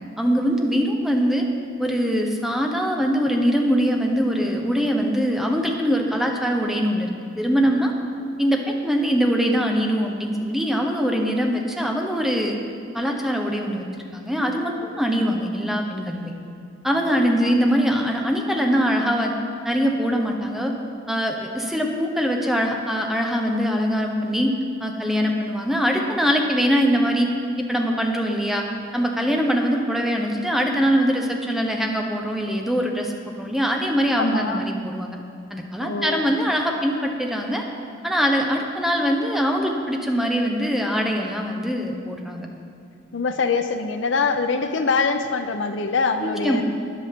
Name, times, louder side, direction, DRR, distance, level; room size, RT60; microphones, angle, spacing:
voice 1, 0.2-1.5 1.8-7.1 7.4-7.9 8.4-12.6 12.9-13.9 14.1-16.3 16.8-19.3 19.6-20.7 21.1-24.5 24.8-27.3 27.6-28.6 28.9-33.1 33.4-35.2 35.5-37.6 38.0-42.5 46.2-46.6, equal, ahead, 1 dB, 0.9 m, -22 dB
voice 2, 34.2-34.7 35.8-36.4 43.1-46.6, left 4 dB, 85° left, 8 dB, 0.6 m, -24 dB
13.5 x 9.9 x 3.6 m, 2.3 s
head